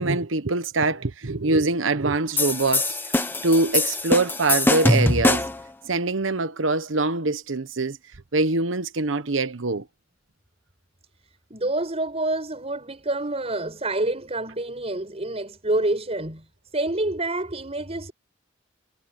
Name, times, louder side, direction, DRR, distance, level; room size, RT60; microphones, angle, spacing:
voice 1, 0.0-5.5 5.8-8.0 8.3-9.9, right 3 dB, 85° right, 1.2 m, -24 dB
sound 1, 2.4-5.7, left 2 dB, 10° left, 1.3 m, -22 dB
voice 2, 11.5-16.4 16.7-18.1, right 2 dB, 35° right, 6.1 m, -27 dB
head